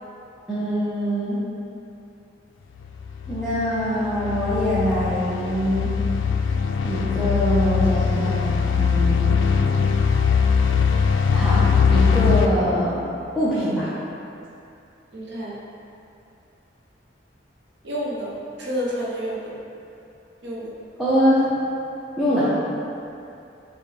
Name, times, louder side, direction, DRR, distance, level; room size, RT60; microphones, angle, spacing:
voice 1, 0.5-1.4 3.3-6.0 6.8-9.7 11.3-11.6 11.9-13.0 13.4-13.9 21.0-21.6 22.2-22.5, equal, ahead, -13 dB, 0.6 m, -23 dB
sound 1, 2.8-12.5, left 6 dB, 80° left, 0.3 m, -21 dB
voice 2, 15.1-15.6 17.8-19.5 20.4-20.7, equal, 65° right, -5 dB, 0.8 m, -29 dB
6.1 x 2.2 x 3.2 m, 2.6 s
head